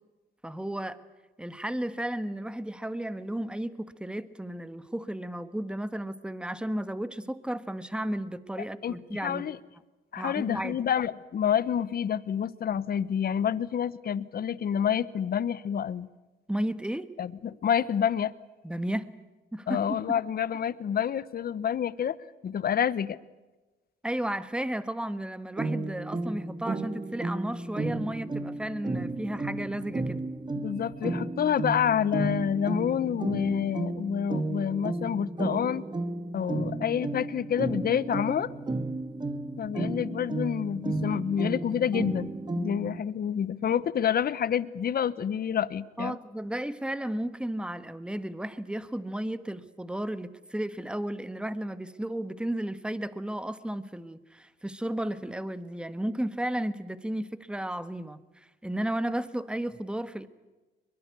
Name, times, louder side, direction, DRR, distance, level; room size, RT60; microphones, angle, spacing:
voice 1, 0.4-1.0 1.4-9.4 10.2-10.8 16.5-17.1 18.6-19.1 19.5-20.0 24.0-30.2 46.0-60.3, right 1 dB, 5° right, 13 dB, 1.3 m, -33 dB
voice 2, 8.8-9.6 10.1-16.1 17.2-18.3 19.7-22.2 22.4-23.2 30.6-35.8 36.3-38.5 39.6-46.2, left 8 dB, 50° left, 18 dB, 0.9 m, -28 dB
sound 1, 25.6-43.0, right 2 dB, 20° right, 1.5 m, -33 dB
22.5 x 22.5 x 8.3 m, 1.2 s
cardioid pair, 90°, 20 cm